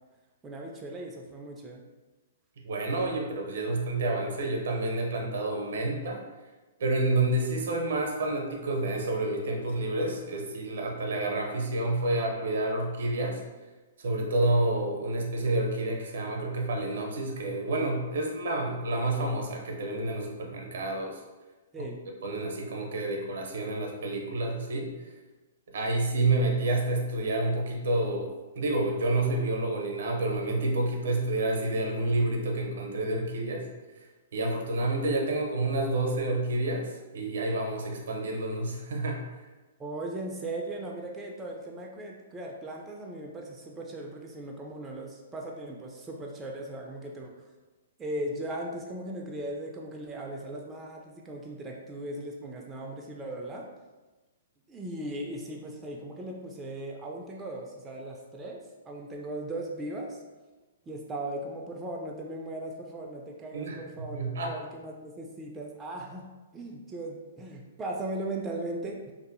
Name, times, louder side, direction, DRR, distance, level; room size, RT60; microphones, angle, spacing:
voice 1, 0.4-1.8 21.7-22.0 39.8-47.3 48.0-53.7 54.7-60.2 60.9-66.3 66.5-69.1, right 1 dB, 15° right, -1 dB, 0.3 m, -38 dB
voice 2, 2.6-6.2 6.8-13.4 14.0-21.2 21.8-21.9 22.2-25.1 25.7-33.6 34.0-34.1 34.3-39.4 63.5-64.5, right 2 dB, 70° right, 1 dB, 0.6 m, -29 dB
2.6 x 2.6 x 2.5 m, 1.2 s
hypercardioid pair, 130°, 0 cm